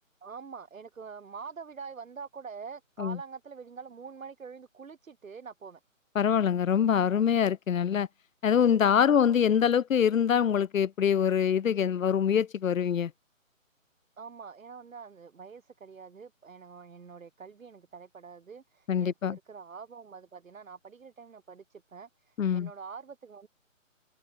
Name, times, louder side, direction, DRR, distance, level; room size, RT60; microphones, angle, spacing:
voice 1, 0.2-5.8 9.1-9.3 14.2-23.5, right 5 dB, 75° right, 1.6 m, -45 dB
voice 2, 6.2-8.1 8.4-13.1 18.9-19.4 22.4-22.7, left 8 dB, 75° left, 0.7 m, -24 dB
hypercardioid pair, 160°, 40 cm